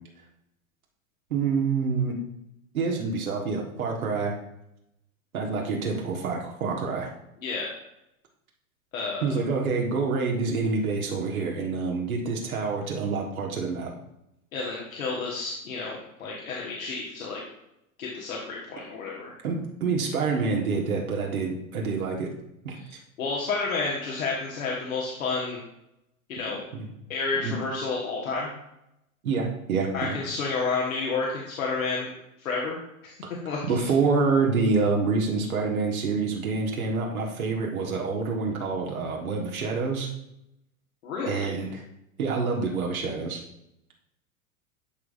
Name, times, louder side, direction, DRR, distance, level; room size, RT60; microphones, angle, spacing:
voice 1, 1.3-2.2 2.7-4.3 5.3-7.1 9.2-13.9 19.4-22.3 22.6-23.0 26.7-26.9 27.4-27.6 29.2-30.1 33.2-33.3 33.6-40.1 41.3-41.8 42.2-43.4, right 4 dB, 75° right, -1 dB, 1.6 m, -27 dB
voice 2, 8.9-9.4 14.5-17.4 18.0-19.3 22.7-22.9 23.2-25.6 26.3-26.6 27.1-28.5 29.9-32.1 32.4-32.8 33.0-33.1 33.4-33.9 41.0-41.5, left 4 dB, 70° left, -3 dB, 1.6 m, -30 dB
12.0 x 4.8 x 2.6 m, 0.85 s
hypercardioid pair, 95°, 43 cm